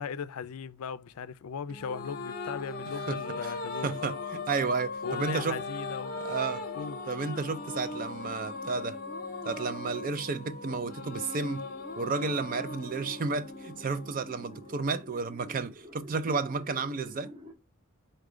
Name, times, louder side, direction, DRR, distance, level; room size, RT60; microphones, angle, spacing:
voice 1, 0.0-3.9 5.0-6.2 6.7-7.0, left 6 dB, 80° left, 0.4 m, -37 dB
sound 1, 1.7-15.3, left 3 dB, 40° left, 0.8 m, -39 dB
voice 2, 3.1-3.5 3.8-5.6 6.2-6.6 7.1-9.0 9.5-11.7 12.0-17.3, right 4 dB, 40° right, 0.4 m, -32 dB
sound 2, 4.9-17.5, equal, 25° right, 0.8 m, -52 dB
4.8 x 2.2 x 4.8 m
head